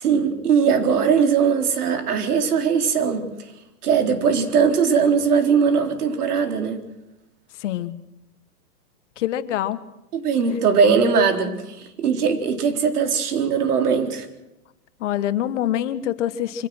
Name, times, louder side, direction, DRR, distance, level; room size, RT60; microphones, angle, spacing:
voice 1, 0.0-3.3 3.8-6.8 10.1-14.3, right 6 dB, 75° right, 6 dB, 4.1 m, -20 dB
voice 2, 7.6-7.9 9.2-9.8 15.0-16.7, left 11 dB, 50° left, 13 dB, 1.4 m, -25 dB
24.5 x 17.5 x 6.2 m, 0.92 s
hypercardioid pair, 155°, 46 cm